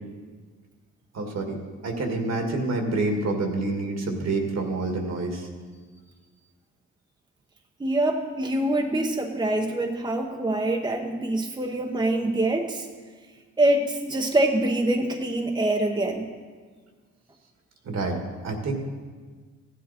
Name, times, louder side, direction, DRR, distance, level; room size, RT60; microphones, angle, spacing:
voice 1, 1.1-1.6 1.8-5.5 17.8-18.7, right 2 dB, 60° right, 3 dB, 2.1 m, -27 dB
voice 2, 7.8-12.9 13.6-16.3, right 1 dB, 15° right, 2 dB, 1.0 m, -25 dB
15.0 x 10.5 x 4.3 m, 1.5 s
cardioid pair, 90°, 30 cm